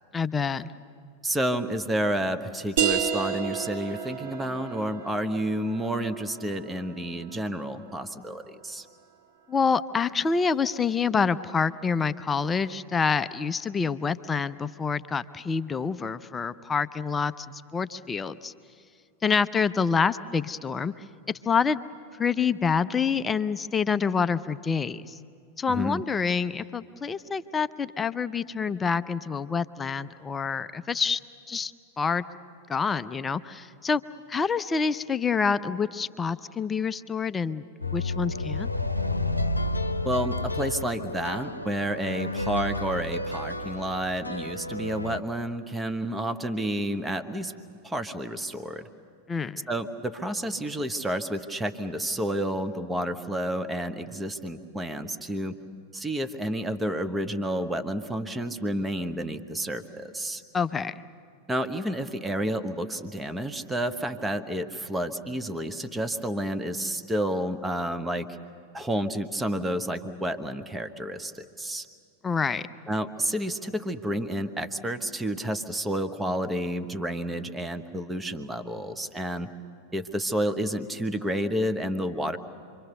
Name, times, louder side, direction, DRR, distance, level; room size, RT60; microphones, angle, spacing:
voice 1, 0.1-0.7 9.5-18.5 19.2-20.9 21.3-21.8 22.2-25.2 25.6-31.2 31.5-32.2 32.7-34.0 34.3-37.6 37.9-38.7 49.3-49.6 60.5-61.0 72.2-72.7, left 5 dB, 15° left, 13 dB, 0.6 m, -27 dB
voice 2, 1.2-8.9 25.7-26.0 40.0-47.5 47.8-48.9 49.7-55.6 55.9-60.4 61.5-68.3 68.7-71.9 72.9-79.5 79.9-82.4, right 1 dB, 10° right, 11 dB, 1.1 m, -30 dB
sound 1, 2.8-8.1, right 8 dB, 50° right, 1.9 m, -32 dB
sound 2, 37.8-45.2, left 2 dB, 85° left, 0.8 m, -31 dB
27.0 x 24.0 x 6.8 m, 2.3 s
figure-of-eight pair, 90°, 0 cm